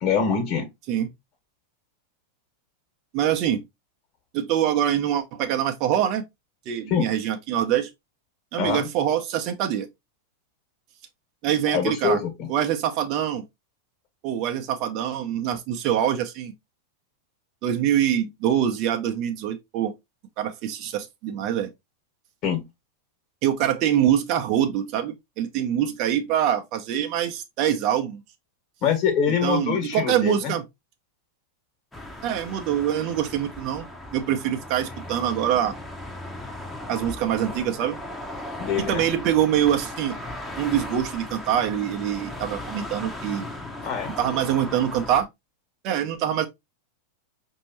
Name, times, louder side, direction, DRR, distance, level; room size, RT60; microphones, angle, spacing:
voice 1, 0.0-0.6 6.9-7.1 8.6-8.9 11.7-12.5 22.4-22.6 28.8-30.5 38.6-39.1 43.8-44.1, left 7 dB, 40° left, 1.5 m, -24 dB
voice 2, 3.1-3.6 4.3-6.2 6.7-7.9 8.5-9.9 11.4-12.2 12.5-13.4 14.2-16.5 17.6-19.9 20.4-21.7 23.4-28.2 29.4-30.6 32.2-33.8 34.1-35.7 36.9-38.0 38.8-40.2 40.6-43.5 44.2-45.3 45.8-46.5, right 10 dB, 40° right, 0.7 m, -24 dB
sound 1, 31.9-45.2, left 1 dB, 5° left, 0.9 m, -37 dB
5.2 x 2.7 x 2.9 m
figure-of-eight pair, 90°, 0 cm